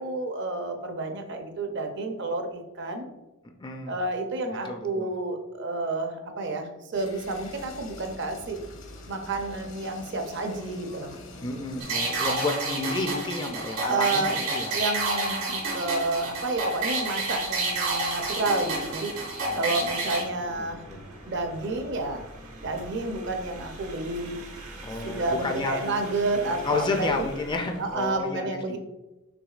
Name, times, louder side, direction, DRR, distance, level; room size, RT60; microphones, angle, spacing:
voice 1, 0.0-3.1 3.9-8.6 9.1-11.2 13.8-19.1 19.6-20.8 21.3-22.2 22.6-24.4 25.0-27.3 27.8-28.8, right 2 dB, 55° right, 5 dB, 0.6 m, -30 dB
voice 2, 3.6-3.9 4.6-5.1 11.4-14.8 19.4-19.9 20.6-21.0 24.8-26.0 26.4-28.8, left 3 dB, 20° left, 4 dB, 0.3 m, -31 dB
sound 1, 6.9-12.4, left 2 dB, 65° left, 0.8 m, -45 dB
sound 2, 11.8-20.2, right 2 dB, 70° right, 1.5 m, -29 dB
sound 3, 12.6-28.2, right 1 dB, 85° right, 1.2 m, -45 dB
6.0 x 3.4 x 2.4 m, 1.1 s
head